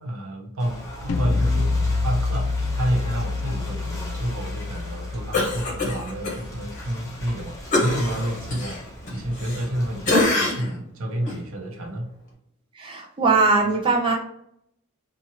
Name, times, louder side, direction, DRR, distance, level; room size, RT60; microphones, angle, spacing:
voice 1, 0.0-12.2, right 1 dB, 75° right, 1 dB, 0.7 m, -29 dB
Ocean / Boat Water vehicle, 0.6-10.2, left 1 dB, 15° left, 0.7 m, -39 dB
sound 1, 1.1-7.1, left 3 dB, 75° left, 0.4 m, -27 dB
Cough, 5.3-6.4 6.7-6.9 7.7-9.8 10.0-10.8 11.2-11.4, left 2 dB, 40° left, 1.1 m, -24 dB
voice 2, 12.8-14.1, right 3 dB, 25° right, 0 dB, 0.4 m, -20 dB
2.7 x 2.4 x 2.7 m, 0.73 s
head